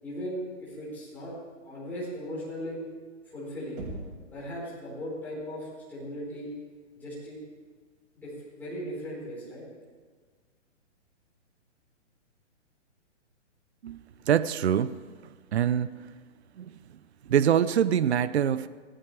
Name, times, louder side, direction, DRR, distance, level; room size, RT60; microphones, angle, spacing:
voice 1, 0.0-1.3 1.6-2.8 3.2-3.8 4.3-6.5 7.0-7.4 8.1-9.6, equal, 5° left, -9 dB, 4.5 m, -38 dB
Knock, 3.8-4.4, right 2 dB, 25° right, 2.3 m, -39 dB
voice 2, 13.8-14.9 15.5-15.9 16.6-16.8 17.3-18.7, right 9 dB, 60° right, 15 dB, 0.6 m, -24 dB
24.5 x 16.5 x 3.4 m, 1.5 s
hypercardioid pair, 180°, 37 cm